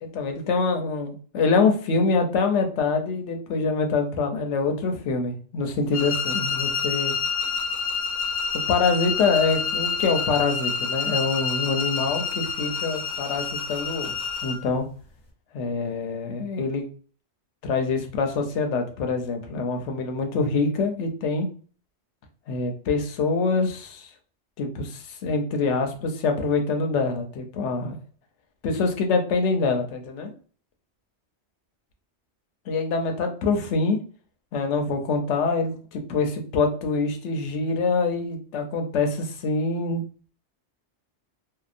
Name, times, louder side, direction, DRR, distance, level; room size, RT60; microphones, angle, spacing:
voice 1, 0.0-7.1 8.7-14.2 14.4-14.8 15.5-16.9 17.6-21.5 22.5-24.1 24.6-28.0 28.6-30.3 32.7-34.0 34.5-40.0, left 4 dB, 85° left, 5 dB, 0.9 m, -25 dB
sound 1, 5.9-14.7, left 5 dB, 50° left, 0.6 m, -28 dB
2.7 x 2.0 x 2.4 m, 0.42 s
omnidirectional pair, 1.2 m